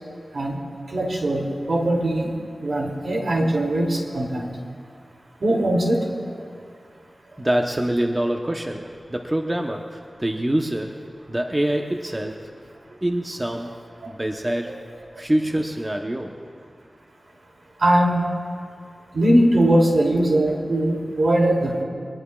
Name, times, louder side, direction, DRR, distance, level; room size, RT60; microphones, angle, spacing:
voice 1, 0.9-2.3 2.6-4.5 5.4-6.1 14.0-14.1 17.8-18.3 19.1-21.8, right 1 dB, 70° right, -1 dB, 2.8 m, -20 dB
voice 2, 7.4-11.0 11.3-12.5 13.0-14.8 15.2-16.4, right 1 dB, 20° right, 2 dB, 0.8 m, -25 dB
24.5 x 19.5 x 2.4 m, 2.2 s
wide cardioid pair, 100°, 0 cm